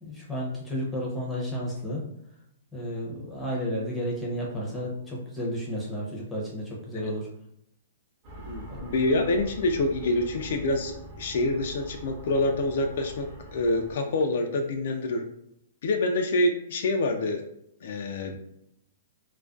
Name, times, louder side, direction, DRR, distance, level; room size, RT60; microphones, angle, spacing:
voice 1, 0.0-2.0 2.7-7.3 8.7-8.8, equal, ahead, -5 dB, 0.6 m, -32 dB
sound 1, 8.2-13.9, right 2 dB, 35° right, 0.8 m, -43 dB
voice 2, 8.5-13.3 13.5-15.2 15.8-17.4 17.8-18.4, left 2 dB, 60° left, 4 dB, 0.3 m, -26 dB
2.4 x 2.1 x 2.4 m, 0.76 s
hypercardioid pair, 155°, 0 cm